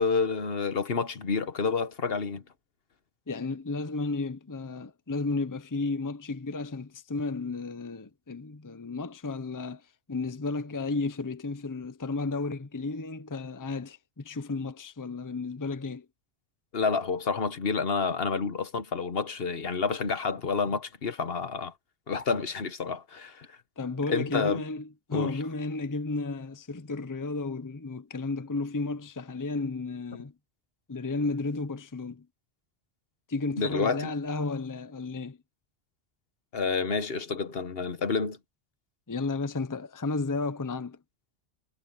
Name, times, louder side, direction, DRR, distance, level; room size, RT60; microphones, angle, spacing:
voice 1, 0.0-2.4 16.7-21.7 22.1-23.5 24.1-24.6 25.1-25.4 33.6-34.1 36.5-38.4, left 5 dB, 65° left, 1.3 m, -29 dB
voice 2, 3.3-9.8 10.1-16.1 23.8-30.3 30.9-32.3 33.3-35.4 39.1-41.0, left 3 dB, 20° left, 0.8 m, -33 dB
omnidirectional pair, 1.1 m